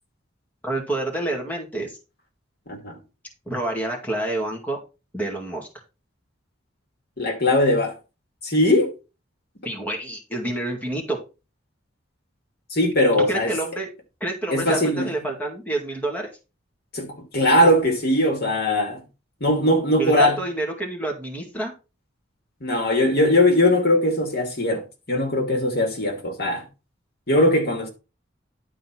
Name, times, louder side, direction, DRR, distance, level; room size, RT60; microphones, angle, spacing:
voice 1, 0.6-2.0 3.5-4.8 5.1-5.7 9.6-11.2 13.3-13.9 14.2-16.3 20.0-21.7, right 1 dB, 10° left, 2.1 m, -28 dB
voice 2, 2.7-3.0 7.2-8.0 8.4-8.9 12.7-13.5 14.5-15.1 16.9-19.0 19.4-20.4 22.6-26.6 27.3-27.9, left 1 dB, 55° left, 2.5 m, -20 dB
11.0 x 3.9 x 6.1 m
head